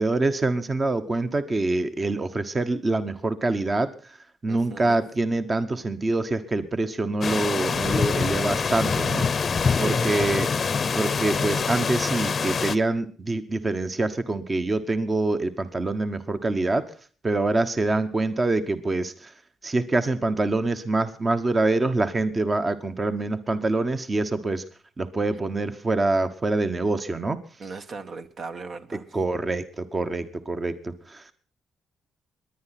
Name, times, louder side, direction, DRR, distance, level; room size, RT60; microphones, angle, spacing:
voice 1, 0.0-4.2 4.4-9.3 9.8-10.5 10.9-16.9 17.2-19.3 19.6-24.6 25.0-27.4 29.1-31.3, right 2 dB, 30° right, 9 dB, 1.1 m, -25 dB
voice 2, 4.5-5.0 9.7-10.1 27.6-29.2, right 4 dB, 50° right, 8 dB, 1.2 m, -38 dB
sound 1, 7.2-12.8, left 5 dB, 40° left, 0.7 m, -25 dB
21.5 x 10.0 x 5.9 m, 0.43 s
cardioid pair, 90°, 0 cm